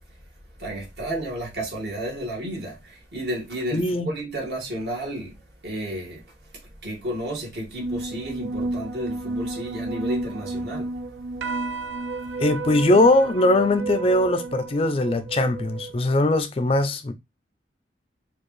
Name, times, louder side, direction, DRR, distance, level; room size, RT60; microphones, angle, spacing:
voice 1, 0.6-10.9, right 1 dB, 65° right, 1.7 m, -32 dB
voice 2, 3.7-4.1 12.4-17.1, left 2 dB, 30° left, 0.4 m, -20 dB
sound 1, 7.8-16.4, right 3 dB, 85° right, 0.4 m, -32 dB
4.6 x 2.4 x 3.1 m
head